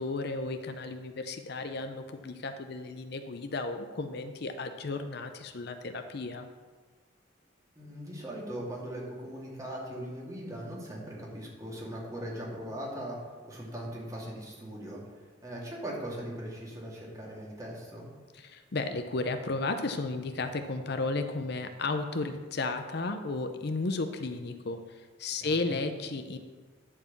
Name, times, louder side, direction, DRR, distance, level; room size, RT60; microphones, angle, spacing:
voice 1, 0.0-6.5 18.3-26.4, left 3 dB, 55° left, 7 dB, 0.6 m, -34 dB
voice 2, 7.8-13.2 13.4-18.1 25.4-25.7, right 1 dB, 15° right, -4 dB, 2.4 m, -40 dB
11.0 x 4.8 x 7.2 m, 1.4 s
head